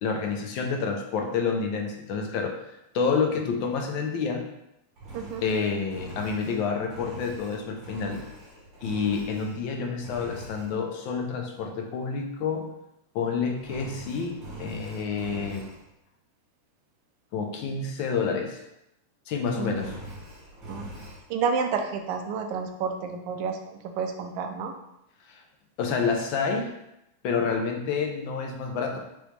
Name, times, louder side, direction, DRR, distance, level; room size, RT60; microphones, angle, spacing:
voice 1, 0.0-2.6 2.9-4.4 5.4-8.2 8.8-12.7 13.1-15.7 17.3-18.6 19.3-19.9 25.3-25.4 25.8-26.7 27.2-29.0, left 5 dB, 45° left, 2 dB, 0.6 m, -28 dB
Engine, 5.0-9.7 10.0-10.7 13.6-15.8 19.6-21.2, right 1 dB, 25° right, 1.4 m, -43 dB
voice 2, 21.3-24.7, right 6 dB, 45° right, 5 dB, 0.5 m, -30 dB
3.0 x 3.0 x 3.3 m, 0.85 s
supercardioid pair, 155°, 0 cm